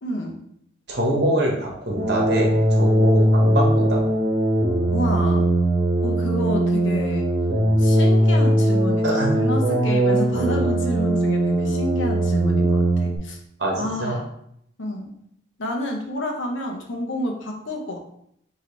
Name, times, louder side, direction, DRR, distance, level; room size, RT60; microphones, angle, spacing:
voice 1, 0.0-0.4 4.9-5.5 6.0-7.3 7.8-13.4 13.8-14.2 14.8-15.1 15.6-18.0, left 1 dB, 80° left, 1 dB, 0.9 m, -29 dB
voice 2, 0.9-4.0 9.0-9.3 13.6-14.2, right 1 dB, 60° right, -1 dB, 1.2 m, -24 dB
sound 1, 1.9-13.2, right 1 dB, 85° right, 0.9 m, -20 dB
5.1 x 3.0 x 3.2 m, 0.72 s
head